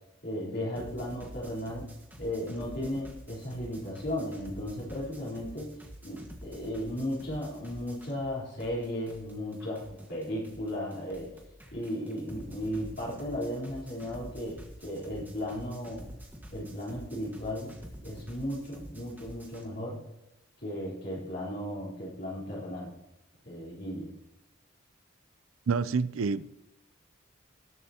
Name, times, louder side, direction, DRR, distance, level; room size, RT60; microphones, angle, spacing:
voice 1, 0.2-1.9 2.2-11.3 11.7-16.0 16.5-17.7 18.0-20.0 20.6-22.9 23.4-24.1, equal, 50° left, 4.0 m, -35 dB
sound 1, 0.8-8.3 8.6-19.6, equal, 10° right, 1.5 m, -48 dB
voice 2, 25.7-26.6, right 5 dB, 75° right, 0.5 m, -28 dB
19.0 x 7.8 x 2.9 m
head